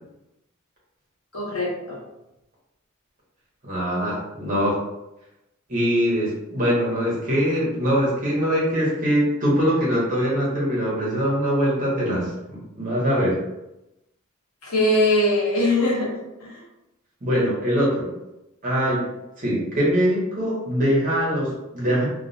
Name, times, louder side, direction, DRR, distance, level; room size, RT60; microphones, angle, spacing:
voice 1, 1.3-2.0 14.6-16.1 16.4-16.6, left 1 dB, 70° left, -4 dB, 0.9 m, -21 dB
voice 2, 3.6-4.8 5.7-13.4 17.2-18.1 18.6-19.0 19.4-22.1, equal, 40° right, -6 dB, 0.9 m, -22 dB
2.3 x 2.2 x 2.6 m, 0.93 s
head